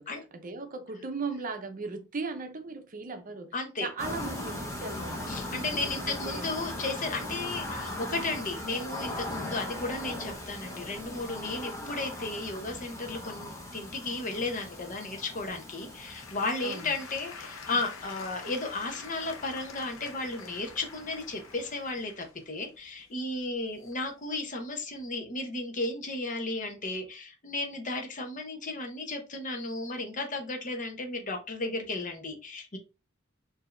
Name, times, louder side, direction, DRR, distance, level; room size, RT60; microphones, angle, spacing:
voice 1, 0.3-3.5 3.8-6.4 16.6-16.9, right 4 dB, 40° right, 0.7 m, -38 dB
voice 2, 3.5-3.9 5.3-32.8, left 2 dB, 40° left, 0.9 m, -34 dB
sound 1, 4.0-21.8, left 1 dB, 15° left, 1.0 m, -40 dB
Applause / Crowd, 15.5-24.3 25.0-25.1, left 5 dB, 90° left, 0.8 m, -47 dB
4.6 x 2.8 x 3.2 m
head